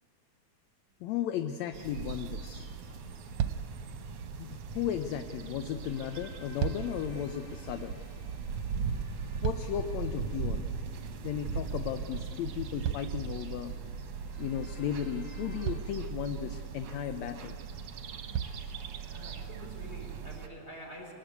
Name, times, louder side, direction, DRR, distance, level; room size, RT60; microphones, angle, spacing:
sound 1, 0.9-1.1 2.5-2.6 3.0-3.1 3.4-3.9 6.2-7.1 8.9-10.0 12.8-13.8 15.0-15.1 15.6-16.1 17.5-17.6 18.3-18.7 19.5-19.6, right 9 dB, 75° right, 1.9 m, -35 dB
voice 1, 1.0-2.7 4.4-8.0 9.4-10.8 11.2-13.8 14.4-17.6, left 10 dB, 75° left, 8 dB, 1.9 m, -35 dB
sound 2, 1.4-15.8, left 1 dB, 50° left, 5.0 m, -61 dB
sound 3, 1.7-20.5, right 6 dB, 60° right, 1.9 m, -39 dB
voice 2, 19.1-21.1, equal, 20° left, 0 dB, 4.7 m, -47 dB
24.5 x 19.0 x 8.2 m, 2.3 s
omnidirectional pair, 3.4 m